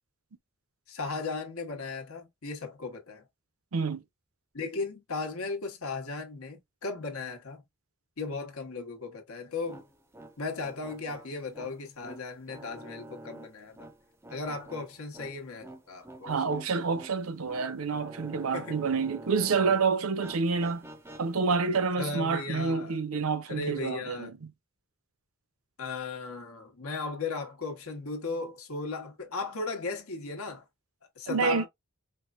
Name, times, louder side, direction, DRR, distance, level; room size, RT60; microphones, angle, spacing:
voice 1, 0.9-3.2 4.5-7.6 8.2-9.8 10.4-13.9 14.3-16.3 18.5-18.8 22.0-23.0 23.5-24.3 25.8-30.6 31.2-31.7, left 3 dB, 80° left, 1.1 m, -36 dB
voice 2, 3.7-4.0 16.2-20.9 21.2-24.4 31.3-31.7, right 5 dB, 75° right, 0.6 m, -28 dB
sound 1, 9.5-19.8 20.1-21.6, right 1 dB, 10° right, 0.5 m, -48 dB
4.6 x 2.1 x 2.4 m
head